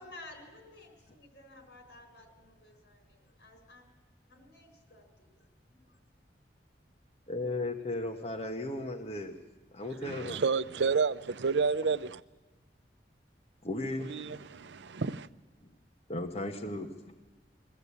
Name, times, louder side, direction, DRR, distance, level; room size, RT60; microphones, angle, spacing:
voice 1, 0.0-3.8 4.3-5.0 5.3-6.0, left 2 dB, 80° left, 4.6 m, -53 dB
voice 2, 7.3-9.4 9.7-10.4 13.6-14.8 16.1-16.9, left 2 dB, 35° left, 1.2 m, -36 dB
voice 3, 10.0-12.2 14.1-15.3, right 5 dB, 85° right, 0.6 m, -30 dB
21.5 x 15.5 x 8.4 m
head